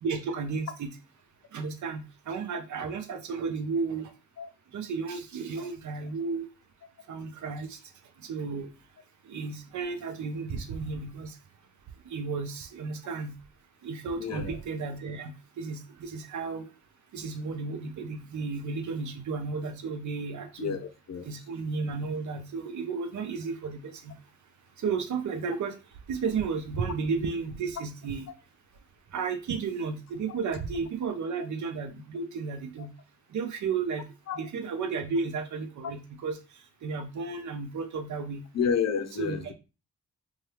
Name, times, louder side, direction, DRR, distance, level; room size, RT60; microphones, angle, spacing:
voice 1, 0.0-0.9 1.5-4.1 4.7-6.5 7.1-7.8 8.2-8.7 9.2-11.4 12.0-13.3 13.8-16.7 17.1-20.8 21.2-24.1 24.8-25.8 26.1-28.3 29.1-32.9 33.3-34.1 34.3-36.4 36.8-38.4 39.2-39.5, right 5 dB, 55° right, 0.7 m, -33 dB
voice 2, 14.2-14.6 20.6-21.3 31.4-31.5 34.3-34.4 38.5-39.5, left 6 dB, 50° left, 0.6 m, -30 dB
2.7 x 2.4 x 3.2 m
hypercardioid pair, 45°, 36 cm